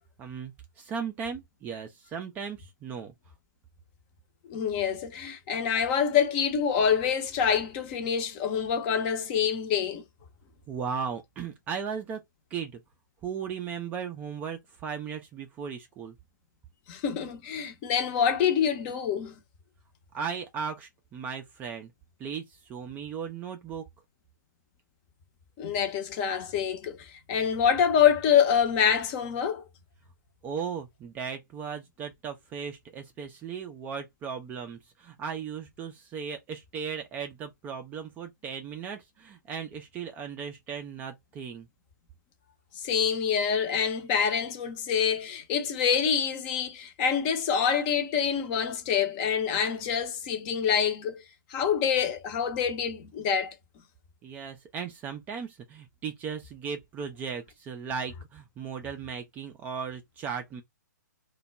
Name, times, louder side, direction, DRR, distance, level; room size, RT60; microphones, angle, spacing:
voice 1, 0.2-3.1 10.7-12.2 12.5-12.8 13.2-16.2 20.1-21.9 22.2-23.8 30.4-41.7 54.2-60.6, right 6 dB, 15° right, 0.3 m, -37 dB
voice 2, 4.5-10.0 16.9-19.4 25.6-29.6 42.8-51.2 51.5-53.5, left 7 dB, 30° left, 0.6 m, -26 dB
2.2 x 2.1 x 3.7 m
figure-of-eight pair, 125°, 10 cm